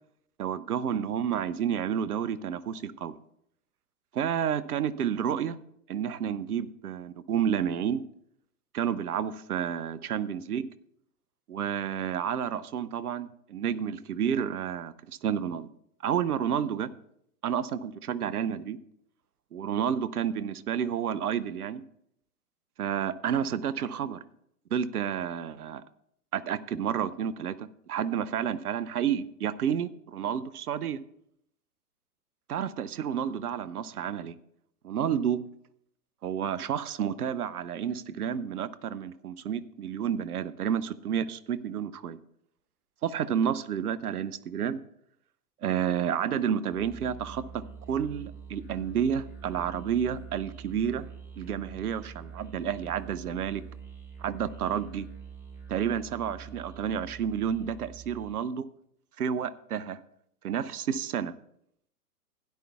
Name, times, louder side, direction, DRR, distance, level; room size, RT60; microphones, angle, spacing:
voice 1, 0.4-3.2 4.1-5.6 5.9-8.0 8.7-10.7 11.5-15.7 16.0-16.9 17.4-18.8 19.5-21.8 22.8-24.2 24.7-25.8 26.3-31.0 32.5-34.3 34.8-35.4 36.2-42.2 43.0-44.8 45.6-47.6 47.9-51.1 51.4-53.6 54.2-55.1 55.7-58.6 59.2-60.0 60.4-61.3, right 8 dB, 70° right, 16 dB, 0.8 m, -30 dB
Musical instrument, 46.7-58.4, right 6 dB, 5° right, 2.8 m, -45 dB
16.0 x 10.5 x 2.3 m, 0.73 s
figure-of-eight pair, 115°, 47 cm